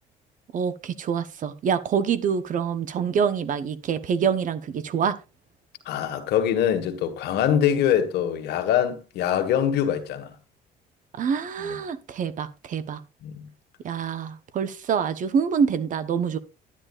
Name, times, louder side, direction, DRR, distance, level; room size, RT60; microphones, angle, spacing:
voice 1, 0.5-5.2 11.2-13.0 13.8-16.4, right 7 dB, 50° right, 0.9 m, -26 dB
voice 2, 5.8-10.3 11.6-11.8 13.2-13.5, left 9 dB, 80° left, 1.5 m, -24 dB
11.0 x 10.0 x 2.4 m
cardioid pair, 110°, 17 cm